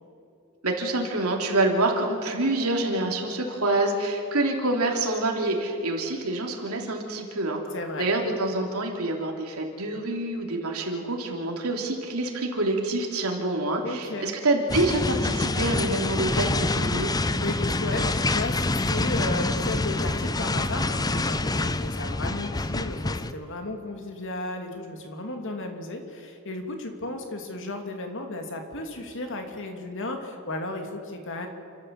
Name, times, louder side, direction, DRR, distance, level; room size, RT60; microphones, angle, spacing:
voice 1, 0.6-7.6 8.0-17.1, right 2 dB, 80° right, 1 dB, 3.2 m, -26 dB
voice 2, 7.7-8.1 13.8-14.4 17.4-31.5, left 2 dB, 60° left, 4 dB, 2.7 m, -34 dB
sound 1, 14.7-23.3, left 2 dB, 20° left, 0.6 m, -26 dB
29.0 x 13.0 x 7.7 m, 2.6 s
head